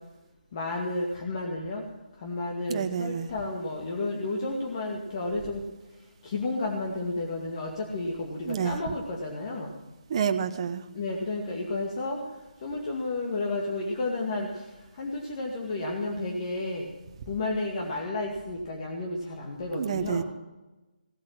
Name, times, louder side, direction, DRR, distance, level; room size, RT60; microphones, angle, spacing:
voice 1, 0.5-1.8 2.2-5.6 6.2-9.7 10.9-12.2 12.6-14.6 15.0-16.9 17.3-20.2, left 2 dB, 35° left, -1 dB, 2.2 m, -32 dB
voice 2, 2.7-3.3 8.4-8.8 10.1-10.8 19.7-20.2, right 7 dB, 35° right, 9 dB, 1.0 m, -28 dB
17.5 x 8.6 x 7.8 m, 1.1 s
figure-of-eight pair, 145°, 5 cm